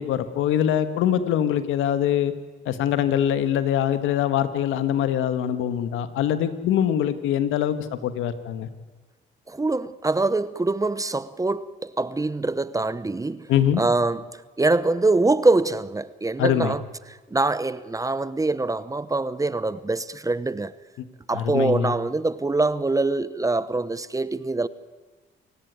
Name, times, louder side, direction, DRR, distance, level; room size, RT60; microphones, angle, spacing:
voice 1, 0.0-2.3 2.6-8.7 13.5-13.8 16.4-16.7 21.0-21.1 21.3-21.9, left 10 dB, 90° left, 1.6 m, -23 dB
voice 2, 9.5-13.5 13.8-16.8 17.3-20.7 21.3-24.7, right 2 dB, 15° right, 0.9 m, -24 dB
28.5 x 16.5 x 9.5 m
cardioid pair, 90°, 20 cm